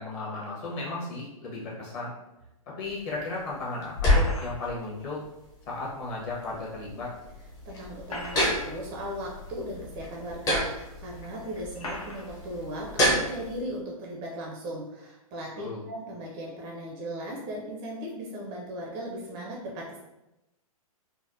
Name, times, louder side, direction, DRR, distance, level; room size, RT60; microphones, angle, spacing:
voice 1, 0.0-2.1 2.8-5.2 5.7-7.1 15.6-15.8, left 2 dB, 40° left, -6 dB, 1.1 m, -35 dB
sound 1, 2.8-13.6, equal, 20° left, 0.7 m, -30 dB
sound 2, 4.0-4.8 6.5-6.6 7.8-8.8 9.6-9.7 10.7-10.8 11.8-12.3, left 2 dB, 75° left, 0.8 m, -36 dB
voice 2, 7.7-20.0, equal, 25° right, -2 dB, 0.4 m, -37 dB
3.3 x 2.1 x 2.5 m, 0.96 s
figure-of-eight pair, 120°, 19 cm